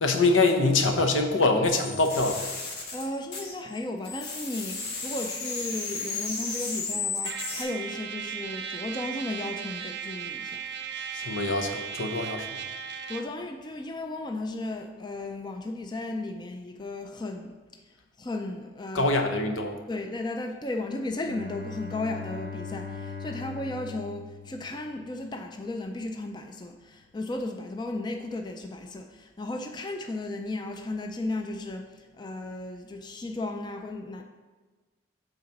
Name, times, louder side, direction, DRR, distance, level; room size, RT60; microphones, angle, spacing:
voice 1, 0.0-2.4 11.1-12.6 18.9-19.8, left 3 dB, 80° left, 4 dB, 0.9 m, -24 dB
sound 1, 1.6-3.8 4.0-7.6, left 4 dB, 55° left, 1.5 m, -34 dB
voice 2, 2.9-10.6 13.1-17.8 18.2-19.1 19.9-34.2, left 2 dB, 20° left, 4 dB, 0.4 m, -35 dB
Trumpet, 7.2-13.4, right 7 dB, 55° right, 0.5 m, -37 dB
Bowed string instrument, 21.2-25.2, left 5 dB, 40° left, 2.1 m, -40 dB
8.1 x 4.0 x 5.8 m, 1.3 s
head